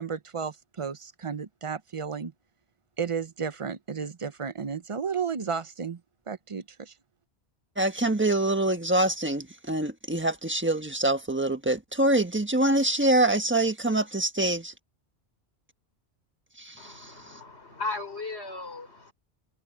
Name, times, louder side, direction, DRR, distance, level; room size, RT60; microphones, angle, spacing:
voice 1, 0.0-2.3 3.0-6.0 6.3-6.9, right 6 dB, 35° right, 0.7 m, -33 dB
voice 2, 7.8-14.7 16.6-17.4, right 1 dB, 10° right, 1.3 m, -25 dB
voice 3, 16.8-19.1, left 3 dB, 70° left, 5.2 m, -36 dB
omnidirectional pair, 1.1 m